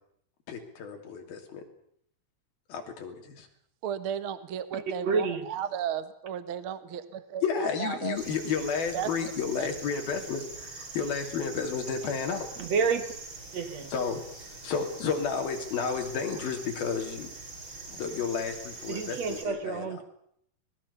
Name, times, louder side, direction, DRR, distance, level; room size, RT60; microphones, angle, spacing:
voice 1, 0.5-1.6 2.7-3.5 7.4-12.5 13.9-14.2 14.5-17.3 17.9-20.0, left 6 dB, 70° left, 4 dB, 4.8 m, -32 dB
voice 2, 3.8-8.2 8.9-9.1 9.6-9.7, right 9 dB, 75° right, 12 dB, 1.2 m, -34 dB
voice 3, 5.0-5.5 12.6-13.1 13.5-13.9 18.9-20.0, right 5 dB, 55° right, 9 dB, 2.2 m, -29 dB
sound 1, 8.1-19.4, right 3 dB, 30° right, 4.6 m, -43 dB
25.0 x 20.0 x 7.0 m, 0.68 s
omnidirectional pair, 4.5 m